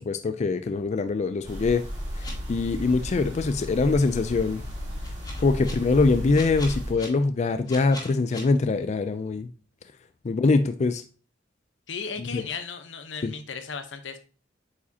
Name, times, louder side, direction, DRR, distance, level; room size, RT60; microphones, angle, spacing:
voice 1, 0.0-1.8 2.5-4.6 5.4-9.5 10.2-11.0 12.2-12.4 13.2-13.3, left 3 dB, 40° left, 10 dB, 0.4 m, -23 dB
sound 1, 1.4-6.9, equal, 20° right, 2.6 m, -34 dB
sound 2, 2.2-2.3 5.0-5.7 6.3-7.1 7.7-8.4, left 2 dB, 20° left, 2.0 m, -39 dB
voice 2, 11.9-14.2, left 5 dB, 85° left, 9 dB, 0.8 m, -35 dB
8.3 x 4.9 x 2.8 m, 0.37 s
head